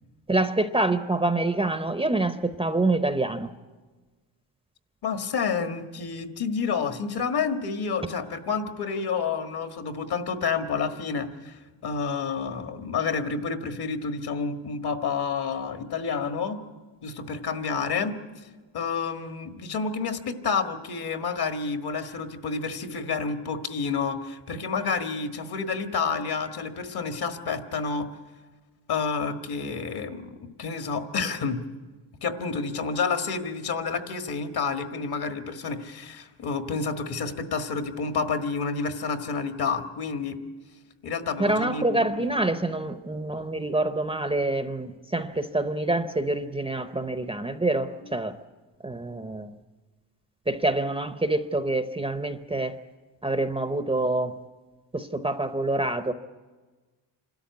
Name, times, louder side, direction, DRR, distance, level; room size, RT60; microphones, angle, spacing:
voice 1, 0.3-3.5 41.4-48.3 48.8-49.5 50.5-52.8 53.2-54.4 54.9-56.1, right 2 dB, 15° right, 10 dB, 0.6 m, -26 dB
voice 2, 5.0-16.6 17.0-18.4 18.7-28.1 28.9-30.3 30.6-31.6 32.2-40.4 41.0-42.3 48.0-48.1, left 5 dB, 60° left, 7 dB, 1.7 m, -29 dB
27.0 x 13.0 x 9.5 m, 1.3 s
cardioid pair, 135°, 43 cm